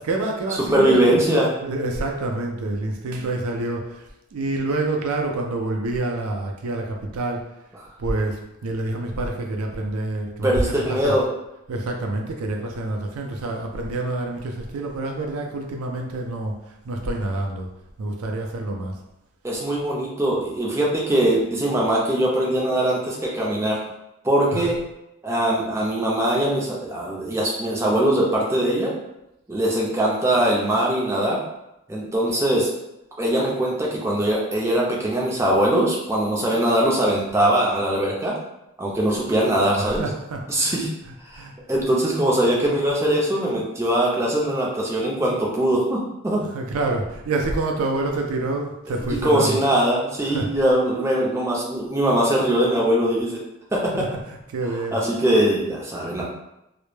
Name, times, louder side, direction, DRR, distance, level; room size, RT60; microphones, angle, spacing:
voice 1, 0.1-1.2 1.6-7.4 8.0-11.1 11.7-17.7 18.0-19.0 24.5-24.7 39.8-40.8 41.0-41.5 46.5-49.6 50.3-50.5 53.9-55.0, right 2 dB, 85° right, 2 dB, 0.4 m, -27 dB
voice 2, 0.7-1.5 10.4-11.3 19.4-23.8 24.2-24.8 25.2-28.9 29.5-31.4 31.9-32.7 33.2-38.3 38.8-40.0 40.5-40.9 41.2-41.4 41.7-46.4 49.0-53.4 53.7-53.9 54.9-56.2, right 1 dB, 10° right, -3 dB, 0.4 m, -21 dB
2.1 x 2.0 x 3.0 m, 0.89 s
head